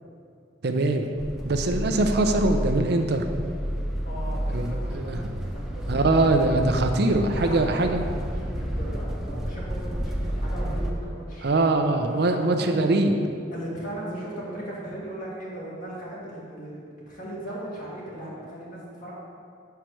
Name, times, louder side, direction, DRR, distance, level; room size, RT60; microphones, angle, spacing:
voice 1, 0.6-1.1 1.4-3.2 4.5-5.2 5.9-7.9 11.4-13.1, right 2 dB, 55° right, 5 dB, 0.5 m, -22 dB
sound 1, 1.2-10.9, equal, ahead, 0.4 m, -30 dB
voice 2, 4.0-6.5 7.3-11.6 12.0-12.6 13.5-19.1, right 1 dB, 45° left, -6 dB, 1.7 m, -37 dB
5.6 x 4.7 x 6.3 m, 2.4 s
head